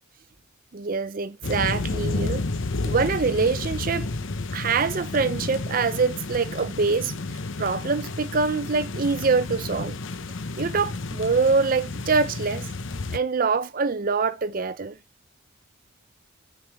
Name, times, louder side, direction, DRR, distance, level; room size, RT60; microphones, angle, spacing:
voice 1, 0.7-2.5 2.8-4.1 4.5-7.1 7.6-10.0 10.6-12.7 13.1-15.0, right 4 dB, 40° right, 0.5 m, -24 dB
sound 1, 1.4-13.2, left 3 dB, 65° left, 0.8 m, -31 dB
9.1 x 5.3 x 4.6 m
head